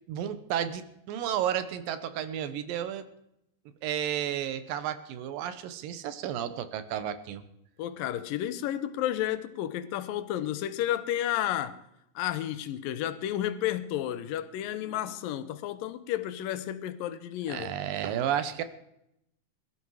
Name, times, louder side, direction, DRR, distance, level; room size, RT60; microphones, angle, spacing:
voice 1, 0.1-3.1 3.8-7.4 17.5-18.6, right 10 dB, 85° right, 2.8 m, -32 dB
voice 2, 7.8-11.8 12.2-17.8, left 12 dB, 85° left, 2.6 m, -32 dB
21.0 x 13.0 x 4.8 m
omnidirectional pair, 3.9 m